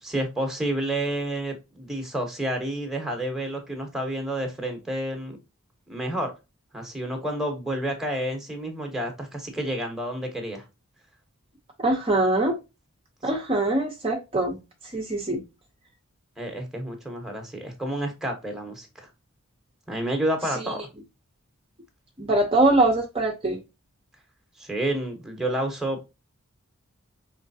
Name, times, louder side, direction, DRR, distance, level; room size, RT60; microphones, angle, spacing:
voice 1, 0.0-5.4 5.9-6.3 6.7-10.6 16.4-19.1 19.9-20.8 24.6-26.0, right 1 dB, ahead, 0.9 m, -30 dB
voice 2, 11.8-12.6 13.2-14.6 14.9-15.4 22.2-23.6, right 2 dB, 25° right, 0.6 m, -22 dB
4.9 x 3.2 x 2.6 m
head